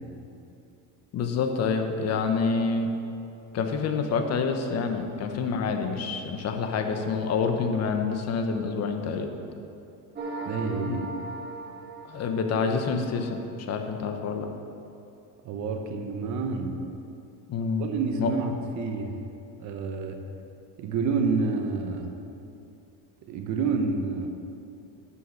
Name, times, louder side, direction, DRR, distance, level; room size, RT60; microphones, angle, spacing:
voice 1, 1.1-2.9 3.5-9.3 10.8-11.0 12.1-13.4 13.7-14.5 17.5-17.9 18.2-18.3, left 5 dB, 40° left, 5 dB, 0.9 m, -27 dB
sound 1, 10.1-13.5, right 3 dB, 25° right, 1.9 m, -38 dB
voice 2, 10.5-11.1 15.4-16.8 17.8-19.1 19.6-20.2 20.8-22.1 23.3-24.3, right 4 dB, 45° right, 4 dB, 0.9 m, -28 dB
11.5 x 5.7 x 6.6 m, 2.7 s
cardioid pair, 160°, 42 cm